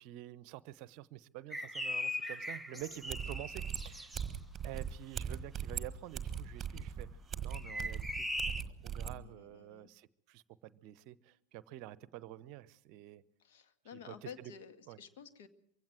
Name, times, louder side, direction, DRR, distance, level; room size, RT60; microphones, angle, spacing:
voice 1, 0.0-4.2 4.6-7.1 7.4-8.3 8.8-13.2 13.9-14.5 14.9-15.0, right 14 dB, 40° right, 0.8 m, -48 dB
sound 1, 1.5-4.2 7.5-8.6, left 1 dB, ahead, 0.8 m, -39 dB
sound 2, 3.1-9.2, right 7 dB, 20° right, 1.5 m, -40 dB
voice 2, 9.1-9.9 13.4-15.5, left 7 dB, 55° left, 1.8 m, -52 dB
23.5 x 16.0 x 7.8 m
figure-of-eight pair, 90°, 0 cm